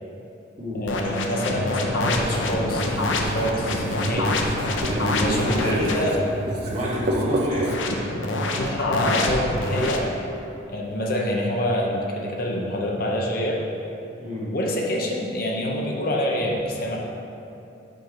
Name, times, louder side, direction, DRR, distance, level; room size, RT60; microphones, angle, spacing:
voice 1, 0.7-4.3 5.2-6.2 6.5-6.6 8.5-10.1 10.7-13.6 14.5-17.0, equal, 50° left, -1 dB, 0.8 m, -26 dB
sound 1, 0.9-6.1 7.5-10.0, left 2 dB, 80° left, 0.7 m, -26 dB
Writing, 2.2-7.8, right 1 dB, 55° right, 0.6 m, -31 dB
voice 2, 4.9-6.1 6.6-7.6 14.2-14.5, equal, 35° right, -7 dB, 1.6 m, -27 dB
5.3 x 4.5 x 6.1 m, 2.7 s
head